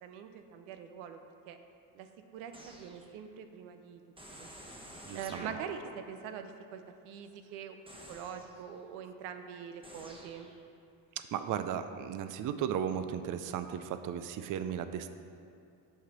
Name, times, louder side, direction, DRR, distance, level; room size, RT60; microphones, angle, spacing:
voice 1, 0.0-1.2 1.5-1.6 1.9-2.1 2.3-4.0 4.4-4.5 5.1-7.8 8.1-10.5, right 7 dB, 85° right, 7 dB, 0.7 m, -44 dB
sound 1, 2.5-3.2 4.2-6.1 7.9-8.7 9.8-10.6, equal, 10° right, 1.1 m, -50 dB
voice 2, 5.1-5.5 11.2-15.1, right 9 dB, 40° right, 10 dB, 0.5 m, -35 dB
8.8 x 3.2 x 5.9 m, 2.5 s
supercardioid pair, 70°, 49 cm